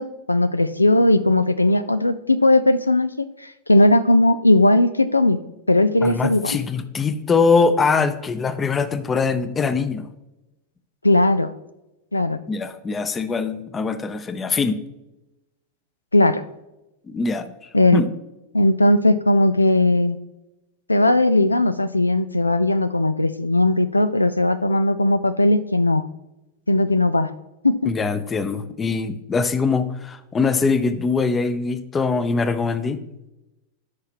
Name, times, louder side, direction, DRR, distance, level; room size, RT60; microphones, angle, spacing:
voice 1, 0.0-5.4 5.7-6.6 11.0-11.5 12.1-12.4 16.1-16.4 17.7-18.0 18.5-20.2 20.9-26.0 26.7-27.3 27.6-27.9, left 2 dB, 85° left, 14 dB, 0.3 m, -18 dB
voice 2, 6.0-10.1 12.5-14.8 17.1-17.5 17.9-18.1 27.8-33.0, left 4 dB, 20° left, 12 dB, 0.7 m, -22 dB
13.0 x 5.8 x 3.0 m, 0.95 s
figure-of-eight pair, 90°, 0 cm